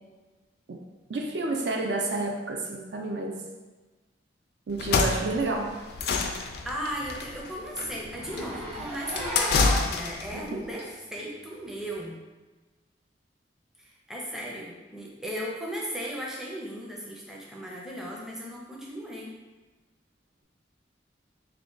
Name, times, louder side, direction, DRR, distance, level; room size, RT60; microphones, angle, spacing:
voice 1, 1.1-3.4 4.7-5.8 10.3-10.6, right 2 dB, 70° right, 1 dB, 0.5 m, -30 dB
sound 1, 4.7-10.4, left 4 dB, 60° left, 0.3 m, -28 dB
Zipper (clothing), 5.6-5.7 6.0-6.1 6.5-6.6 6.9-7.0 7.3-7.4 8.1-10.1 10.8-10.9 11.9-12.0, right 1 dB, 35° right, 0.8 m, -35 dB
voice 2, 6.6-12.2 13.8-19.4, equal, 5° right, -3 dB, 0.5 m, -36 dB
3.5 x 2.2 x 3.8 m, 1.2 s
head